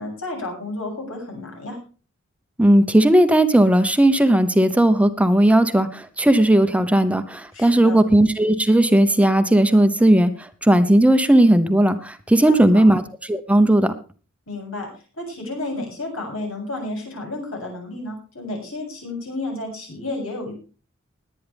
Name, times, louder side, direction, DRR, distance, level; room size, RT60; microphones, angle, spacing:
voice 1, 0.0-1.8 7.5-8.0 12.3-12.8 14.5-14.9 15.2-20.5, left 2 dB, 85° left, 0 dB, 7.8 m, -31 dB
voice 2, 2.6-13.0 13.3-13.9, right 1 dB, 5° right, 10 dB, 0.9 m, -16 dB
20.5 x 9.4 x 3.5 m, 0.37 s
head